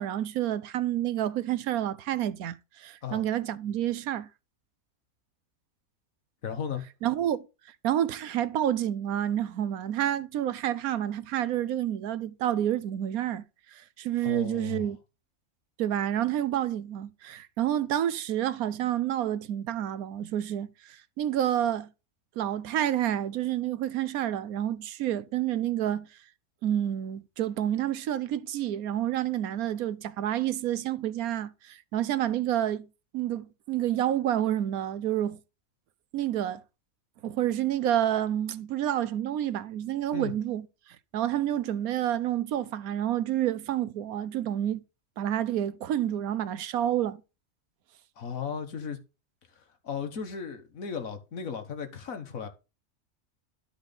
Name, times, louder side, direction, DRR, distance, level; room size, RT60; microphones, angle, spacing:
voice 1, 0.0-4.3 7.0-7.5 7.8-13.4 14.0-15.0 15.8-21.9 22.4-26.1 26.6-32.9 33.1-35.4 36.1-36.6 37.2-40.7 41.1-44.8 45.2-47.2, right 11 dB, 85° right, 1.2 m, -29 dB
voice 2, 6.4-6.8 14.2-14.9 40.1-40.3 48.2-49.0 49.8-52.5, left 6 dB, 70° left, 1.8 m, -35 dB
12.5 x 4.9 x 4.0 m
omnidirectional pair, 1.5 m